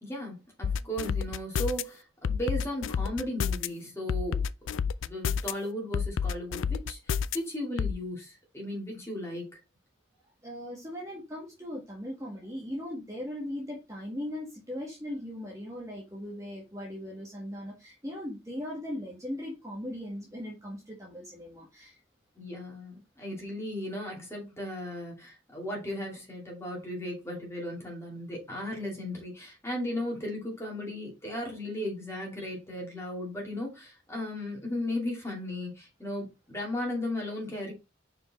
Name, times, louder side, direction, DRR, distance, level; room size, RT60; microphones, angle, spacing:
voice 1, 0.0-4.5 4.8-9.5 22.4-37.7, left 1 dB, 15° left, 2.5 m, -36 dB
sound 1, 0.6-1.8 2.2-3.7 4.1-5.5 5.9-7.4 7.8-7.9, left 6 dB, 80° left, 0.4 m, -29 dB
voice 2, 10.4-22.0 32.4-32.5, left 1 dB, 15° right, 1.5 m, -39 dB
5.1 x 4.8 x 4.1 m
head